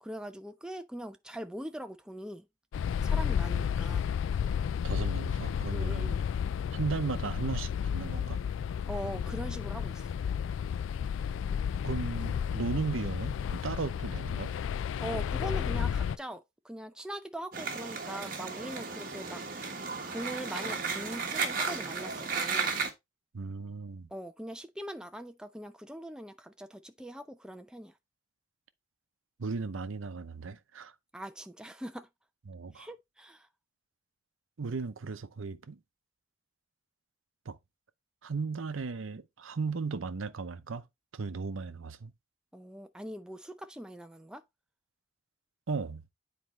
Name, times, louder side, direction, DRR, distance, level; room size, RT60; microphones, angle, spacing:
voice 1, 0.0-2.5 3.0-4.1 5.7-6.2 8.9-10.2 15.0-19.4 20.1-22.8 24.1-27.9 31.1-32.1 32.7-33.5 42.5-44.4, right 1 dB, 5° right, 0.5 m, -41 dB
sound 1, 2.7-16.2, left 8 dB, 80° left, 0.3 m, -32 dB
voice 2, 4.8-6.1 6.7-8.4 11.8-14.5 23.3-24.1 29.4-30.9 32.5-32.9 34.6-35.8 37.5-37.6 38.2-40.9 41.1-42.1 45.7-46.0, right 4 dB, 90° right, 0.7 m, -36 dB
sound 2, 17.5-22.9, right 5 dB, 45° right, 1.3 m, -34 dB
9.4 x 4.3 x 3.1 m
head